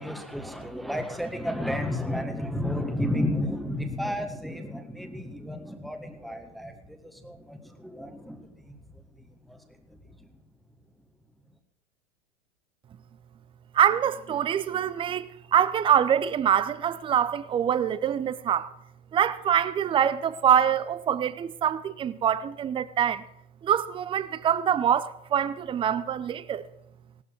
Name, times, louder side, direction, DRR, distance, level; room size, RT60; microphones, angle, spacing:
voice 1, 0.0-10.3, left 1 dB, ahead, 1.4 m, -33 dB
voice 2, 13.7-18.7 19.1-23.2 23.6-26.7, right 9 dB, 15° right, 0.6 m, -25 dB
18.0 x 12.5 x 4.7 m
figure-of-eight pair, 100°, 35 cm